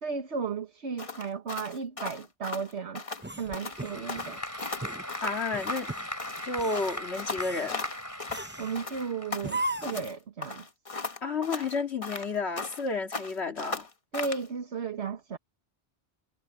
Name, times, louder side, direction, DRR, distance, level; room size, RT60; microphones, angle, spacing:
voice 1, 0.0-3.0 3.4-4.4 8.6-10.7 14.1-15.4, right 5 dB, 70° right, 1.7 m, -34 dB
sound 1, 1.0-3.3 3.5-3.8 4.1-5.9 6.2-8.5 8.7-10.1 10.4-12.9 13.1-14.5, left 3 dB, 30° left, 1.1 m, -37 dB
sound 2, 3.2-4.4 4.8-5.0 5.5-6.1 6.5-7.0 7.4-7.7 8.3-8.8 9.4-10.1, right 2 dB, 10° right, 0.7 m, -37 dB
Applause / Crowd, 3.3-9.9, equal, 15° left, 4.9 m, -39 dB
voice 2, 5.2-5.9 6.4-7.8 11.2-13.9, left 4 dB, 70° left, 2.4 m, -31 dB
omnidirectional pair, 1.2 m